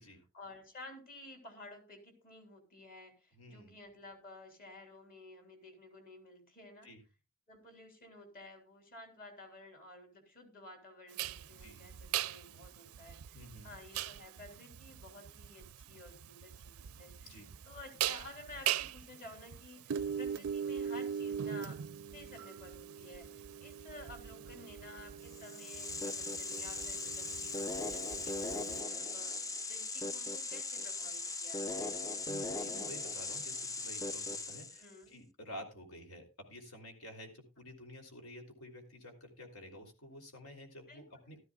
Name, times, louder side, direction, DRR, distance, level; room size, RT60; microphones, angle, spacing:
voice 1, 0.3-6.9 7.5-17.3 17.6-21.8 22.1-31.8 34.8-35.1 40.9-41.0, left 2 dB, 45° left, 4 dB, 3.4 m, -53 dB
voice 2, 3.3-3.7 6.8-7.0 11.6-11.8 13.3-13.7 17.2-17.5 32.2-41.4, equal, 85° left, 3 dB, 3.2 m, -51 dB
sound 1, 11.2-28.8, right 9 dB, 85° right, 0.5 m, -40 dB
sound 2, 25.3-34.9, left 3 dB, 15° left, 0.5 m, -39 dB
15.5 x 12.5 x 2.3 m, 0.29 s
head